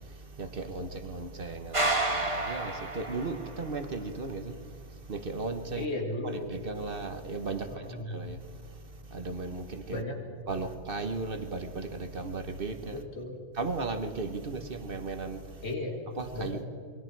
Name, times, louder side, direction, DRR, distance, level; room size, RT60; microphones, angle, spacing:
voice 1, 0.0-5.9 6.2-10.0 10.5-13.0 13.5-15.7 16.2-16.7, right 3 dB, 50° right, 1.3 m, -36 dB
sound 1, 1.7-3.7, right 2 dB, 25° right, 1.7 m, -30 dB
voice 2, 5.7-6.5 7.7-8.2 9.9-10.2 12.9-13.4 15.6-16.0 16.3-16.7, left 2 dB, 70° left, 2.8 m, -35 dB
28.5 x 22.5 x 4.6 m
omnidirectional pair, 1.2 m